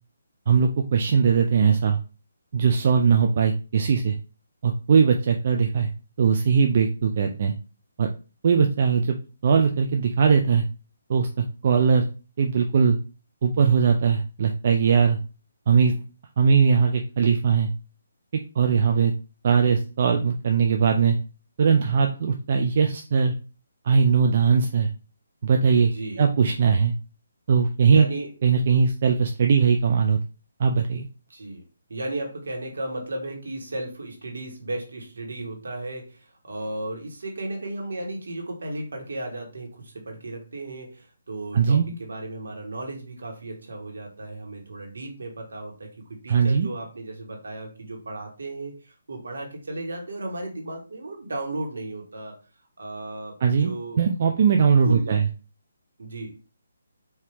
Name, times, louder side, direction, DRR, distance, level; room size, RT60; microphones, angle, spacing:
voice 1, 0.5-2.0 2.5-4.1 4.6-5.9 6.2-7.5 8.0-8.1 8.4-9.2 9.4-10.6 11.1-11.3 11.6-12.0 12.4-13.0 13.4-15.2 15.7-16.0 16.4-17.7 18.6-19.1 19.4-21.2 21.6-23.3 23.8-24.9 25.4-25.9 26.2-26.9 27.5-28.1 28.4-30.2 30.6-31.1 41.5-41.9 46.3-46.7 53.4-53.7 54.0-55.2, right 6 dB, 50° right, 3 dB, 0.5 m, -20 dB
voice 2, 25.9-26.2 27.8-28.3 31.3-31.6 31.9-52.4 52.8-54.0 54.8-55.2 56.0-56.3, right 2 dB, 75° right, 1 dB, 1.6 m, -35 dB
4.6 x 2.9 x 3.5 m, 0.34 s
hypercardioid pair, 155°, 0 cm